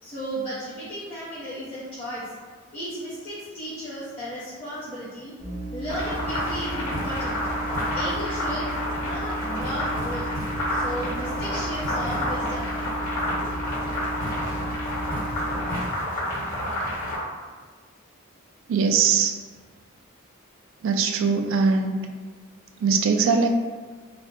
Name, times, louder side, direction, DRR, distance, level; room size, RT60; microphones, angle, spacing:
voice 1, 0.0-2.3 2.7-5.3 5.7-7.4 7.9-8.7 9.0-10.3 10.7-12.8, equal, 25° left, -12 dB, 0.7 m, -34 dB
sound 1, 5.4-15.7, right 1 dB, 10° right, 0.7 m, -34 dB
sound 2, 5.9-17.2, equal, 45° left, 1.2 m, -29 dB
voice 2, 18.7-19.4 20.8-22.0 22.8-23.5, right 5 dB, 65° right, 5 dB, 0.3 m, -21 dB
2.5 x 2.1 x 3.5 m, 1.4 s
head